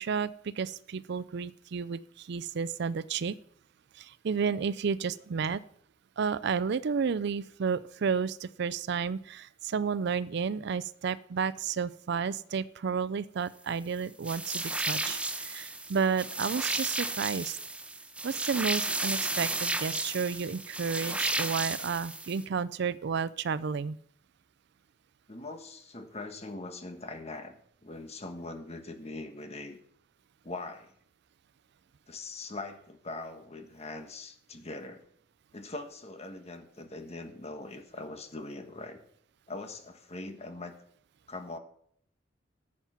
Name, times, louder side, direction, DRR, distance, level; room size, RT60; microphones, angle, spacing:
voice 1, 0.0-3.4 4.0-5.6 6.2-17.6 18.2-24.0, right 6 dB, 60° right, 17 dB, 0.4 m, -31 dB
sound 1, 14.2-22.4, right 2 dB, 5° right, 0.7 m, -33 dB
voice 2, 25.3-29.8 30.4-30.9 32.1-35.0 35.5-39.0 39.5-40.8 41.3-41.6, left 2 dB, 35° left, 6 dB, 1.5 m, -42 dB
13.5 x 7.3 x 5.8 m, 0.66 s
head